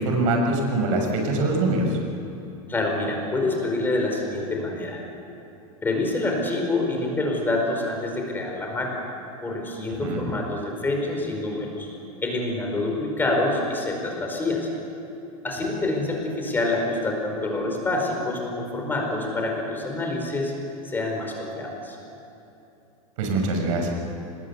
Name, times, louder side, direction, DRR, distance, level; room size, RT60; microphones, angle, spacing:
voice 1, 0.0-2.0 10.0-10.2 23.2-23.9, right 2 dB, 65° right, 2 dB, 6.3 m, -23 dB
voice 2, 2.7-5.0 5.8-9.0 9.4-11.9 12.2-14.7 15.4-20.5 20.9-22.0, left 2 dB, 10° left, 1 dB, 4.7 m, -26 dB
25.5 x 20.5 x 8.3 m, 2.9 s
supercardioid pair, 150°, 18 cm